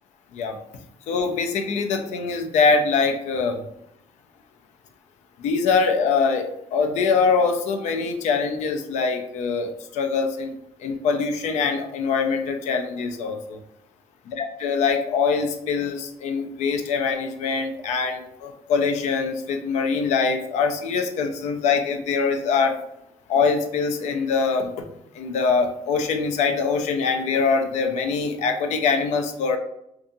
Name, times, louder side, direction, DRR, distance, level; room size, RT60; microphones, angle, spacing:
voice 1, 1.1-3.6 5.4-10.5 10.8-13.6 14.3-22.7 23.3-24.8 25.2-29.6, left 5 dB, 85° left, 5 dB, 0.4 m, -23 dB
2.6 x 2.4 x 2.6 m, 0.79 s
cardioid pair, 125°, 12 cm